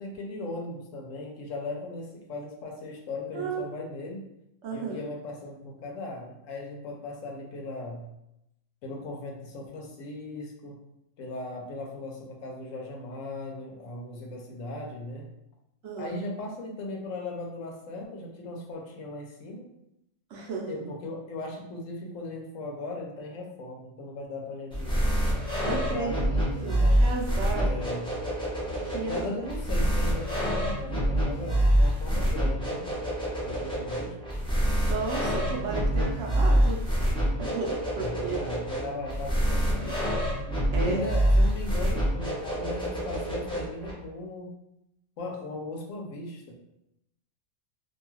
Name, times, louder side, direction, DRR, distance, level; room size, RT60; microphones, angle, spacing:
voice 1, 0.0-4.2 4.7-8.1 8.8-10.8 11.2-15.3 16.0-19.7 20.7-25.1 25.7-27.1 27.6-28.1 29.1-32.9 33.4-34.1 38.0-40.0 40.7-44.5 45.2-46.5, left 2 dB, 80° left, 0 dB, 1.0 m, -38 dB
voice 2, 3.3-3.7 4.6-5.0 15.8-16.2 20.3-20.8 25.6-27.7 28.8-29.2 34.8-36.8 37.4-38.4 40.7-41.0, right 4 dB, 70° right, -2 dB, 0.9 m, -33 dB
sound 1, 24.7-43.9, equal, 5° left, 0.6 m, -26 dB
2.6 x 2.3 x 3.0 m, 0.84 s
omnidirectional pair, 1.3 m